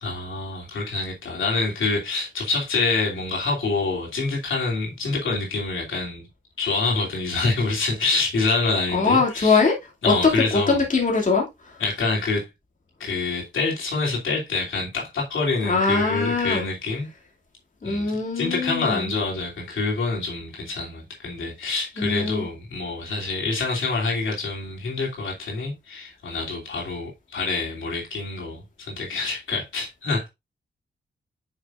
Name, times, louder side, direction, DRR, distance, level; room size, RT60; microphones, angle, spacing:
voice 1, 0.0-6.3 6.6-9.6 10.0-10.8 11.8-12.5 13.0-17.1 17.8-30.3, left 3 dB, 85° left, 3.0 m, -26 dB
voice 2, 8.9-9.7 10.0-11.8 15.6-16.7 17.8-19.1 22.0-22.5, left 4 dB, 40° left, 2.6 m, -22 dB
8.4 x 6.4 x 2.5 m
cardioid pair, 85°, 20 cm